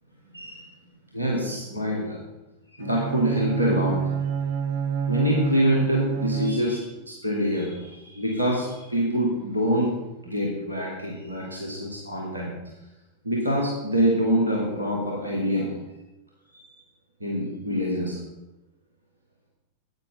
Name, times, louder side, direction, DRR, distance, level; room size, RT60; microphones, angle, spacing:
voice 1, 0.3-0.6 1.1-2.2 2.7-4.0 5.1-9.9 10.2-12.5 13.2-15.7 16.5-16.7 17.2-18.2, equal, 80° right, -2 dB, 1.6 m, -25 dB
Bowed string instrument, 2.8-7.0, right 7 dB, 55° right, 0.8 m, -28 dB
10.0 x 8.5 x 3.7 m, 0.97 s
figure-of-eight pair, 90°, 0 cm